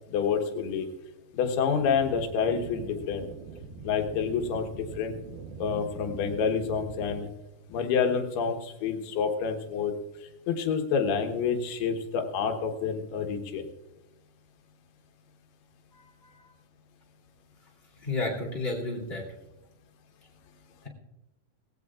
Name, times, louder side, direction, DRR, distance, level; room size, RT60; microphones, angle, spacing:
voice 1, 0.1-0.9 1.3-3.3 3.8-4.7 5.0-5.1 5.6-7.3 7.7-9.9 10.5-13.7, left 6 dB, 90° left, 4 dB, 3.3 m, -28 dB
sound 1, 1.7-7.3, right 6 dB, 75° right, 2.8 m, -43 dB
voice 2, 15.9-16.5 18.0-19.3, left 2 dB, 20° left, 0 dB, 2.0 m, -32 dB
19.0 x 16.0 x 2.4 m, 1.0 s
omnidirectional pair, 4.4 m